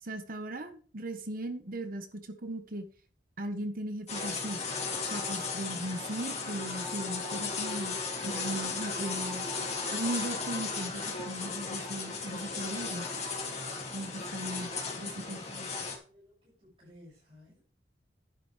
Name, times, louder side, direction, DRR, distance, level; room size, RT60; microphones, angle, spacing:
voice 1, 0.0-2.9 3.4-4.6 5.0-7.9 8.2-9.5 9.9-13.1 13.9-14.7 15.0-15.7, right 1 dB, 50° right, 8 dB, 1.4 m, -38 dB
sound 1, 4.1-16.0, left 4 dB, 40° left, 3.0 m, -36 dB
voice 2, 14.0-17.6, left 1 dB, 30° right, -7 dB, 6.8 m, -58 dB
11.5 x 10.5 x 3.4 m, 0.40 s
head